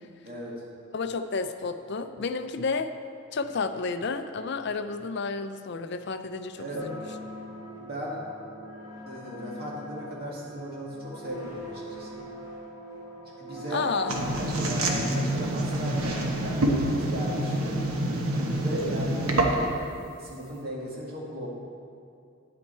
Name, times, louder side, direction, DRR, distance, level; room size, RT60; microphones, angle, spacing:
voice 1, 0.2-0.6 6.5-6.9 7.8-8.2 9.1-12.2 13.4-17.7 18.6-21.5, equal, 45° right, -4 dB, 2.1 m, -37 dB
voice 2, 0.9-2.9 3.3-7.0 13.7-14.1, left 4 dB, 55° left, 9 dB, 0.5 m, -31 dB
sound 1, 6.7-15.2, left 1 dB, 15° right, 1.9 m, -42 dB
sound 2, 14.1-19.8, right 1 dB, 90° right, 1.2 m, -27 dB
10.0 x 8.6 x 4.4 m, 2.5 s
head